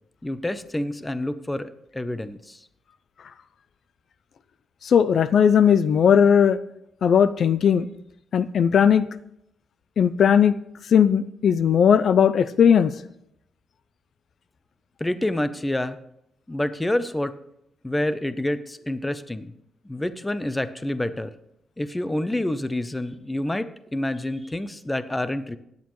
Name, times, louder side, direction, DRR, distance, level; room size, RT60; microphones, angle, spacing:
voice 1, 0.2-2.6 15.0-16.0 16.5-17.4 17.8-19.5 19.8-21.3 21.8-25.6, left 1 dB, 10° left, 12 dB, 0.6 m, -28 dB
voice 2, 4.8-6.6 7.0-7.9 8.3-9.1 10.0-10.6 10.9-12.9, left 8 dB, 55° left, 15 dB, 0.4 m, -17 dB
16.5 x 10.5 x 3.1 m, 0.78 s
cardioid pair, 145°, 0 cm